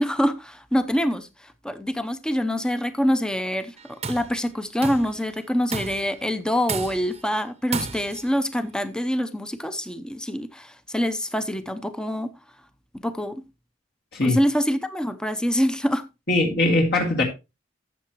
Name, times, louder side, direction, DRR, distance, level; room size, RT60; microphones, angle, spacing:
voice 1, 0.0-12.3 13.0-13.4 14.2-16.0, equal, 5° left, 0.7 m, -25 dB
Tools, 3.8-4.3 4.8-5.2 5.7-6.2 6.7-7.2 7.7-8.3, right 5 dB, 35° right, 0.8 m, -32 dB
voice 2, 16.3-17.2, left 2 dB, 60° left, 2.1 m, -21 dB
13.0 x 7.7 x 3.0 m
head